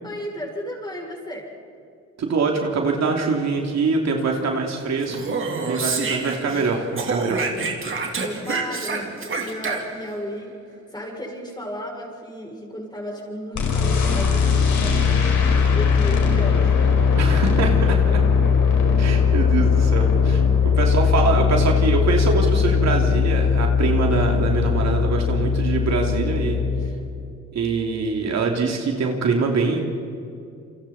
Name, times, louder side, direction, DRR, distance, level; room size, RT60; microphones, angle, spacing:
voice 1, 0.0-1.5 7.9-16.8 20.5-20.7 26.8-26.9, equal, 15° left, -1 dB, 7.1 m, -34 dB
voice 2, 2.2-7.5 17.2-18.0 19.0-26.6 27.5-29.8, right 4 dB, 60° right, 1 dB, 3.0 m, -24 dB
Speech, 5.0-6.7 7.0-10.1, right 4 dB, 40° right, 3.6 m, -27 dB
sound 1, 13.5-26.9, left 6 dB, 75° left, 4.8 m, -19 dB
28.5 x 26.0 x 4.3 m, 2.5 s
cardioid pair, 90°, 30 cm